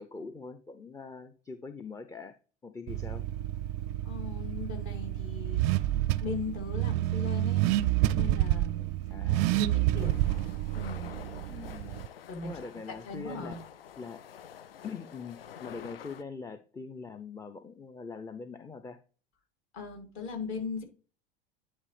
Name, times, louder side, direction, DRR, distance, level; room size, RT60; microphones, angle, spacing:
voice 1, 0.0-2.4 2.6-3.2 9.1-9.6 11.5-12.1 12.4-13.6 14.0-14.2 14.8-19.0, left 4 dB, 10° left, 11 dB, 0.5 m, -43 dB
Car / Accelerating revving vroom, 2.9-12.1, right 15 dB, 45° right, 0.4 m, -29 dB
voice 2, 4.0-5.9 6.2-7.7 8.1-9.1 9.4-10.1 10.7-11.1 12.3-12.6 13.0-13.6 19.7-20.8, left 4 dB, 45° left, 2 dB, 2.5 m, -39 dB
sound 1, 9.9-16.2, left 9 dB, 80° left, 0.5 m, -48 dB
9.9 x 4.2 x 3.3 m, 0.38 s
figure-of-eight pair, 80°, 29 cm